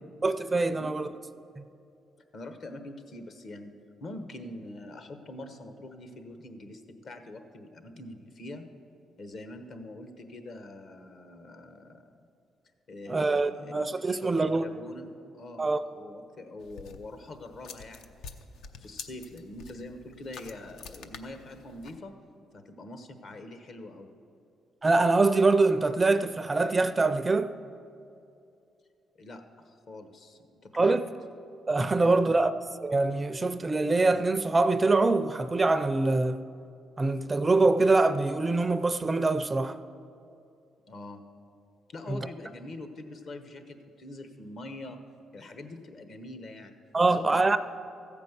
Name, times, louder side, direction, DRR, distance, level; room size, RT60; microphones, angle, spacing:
voice 1, 0.2-1.1 1.6-1.7 13.1-14.7 15.6-15.8 24.8-27.5 30.8-31.0 31.7-32.5 32.8-36.4 37.0-39.8 42.1-42.2 46.9-47.6, right 3 dB, 25° right, 0.4 m, -24 dB
voice 2, 2.3-3.7 4.0-8.7 9.2-12.3 12.9-18.4 18.8-22.1 22.5-24.1 29.2-31.0 31.9-32.4 40.9-41.2 41.9-45.0 45.3-46.8 47.0-47.6, left 2 dB, 55° left, 1.0 m, -44 dB
sound 1, 16.6-22.0, left 5 dB, 80° left, 0.6 m, -47 dB
14.0 x 5.2 x 8.1 m
cardioid pair, 90°, 0 cm